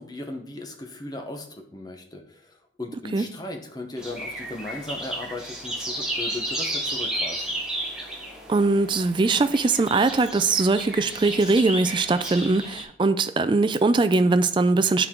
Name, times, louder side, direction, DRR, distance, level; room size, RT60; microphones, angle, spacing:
voice 1, 0.0-7.6, left 2 dB, 20° left, 0.8 m, -37 dB
sound 1, 4.0-12.8, right 1 dB, 5° right, 1.2 m, -33 dB
voice 2, 8.5-15.1, right 3 dB, 25° right, 0.3 m, -21 dB
9.7 x 4.6 x 3.7 m
head